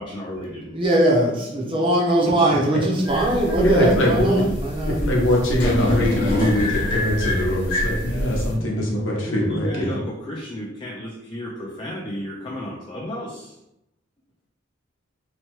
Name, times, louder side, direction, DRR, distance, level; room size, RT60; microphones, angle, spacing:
voice 1, 0.0-0.8 8.6-13.6, left 1 dB, 25° left, -4 dB, 0.3 m, -33 dB
voice 2, 0.7-5.0, right 1 dB, 25° right, -3 dB, 0.6 m, -20 dB
sound 1, 3.1-8.6, left 1 dB, 45° left, 1.0 m, -26 dB
voice 3, 3.6-4.3 5.0-10.0, left 1 dB, 75° left, -2 dB, 0.8 m, -22 dB
2.9 x 2.1 x 3.0 m, 0.85 s
head